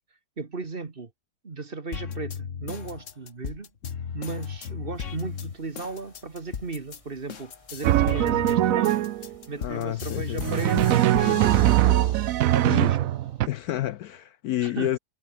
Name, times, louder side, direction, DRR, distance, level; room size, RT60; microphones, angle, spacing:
voice 1, 0.4-1.1 1.4-3.7 4.1-9.0 9.5-12.1 12.5-13.1 14.6-14.9, right 3 dB, 30° right, 1.7 m, -36 dB
sound 1, 1.9-7.0 7.3-12.5 13.0-13.9, left 7 dB, 50° left, 1.6 m, -36 dB
sound 2, 4.9-11.4, left 1 dB, 15° left, 6.5 m, -59 dB
Drum, 7.8-9.3 10.4-13.5, right 14 dB, 70° right, 0.8 m, -21 dB
voice 2, 9.6-10.8 12.6-12.9 13.4-15.0, left 13 dB, 70° left, 1.0 m, -30 dB
omnidirectional pair, 1.9 m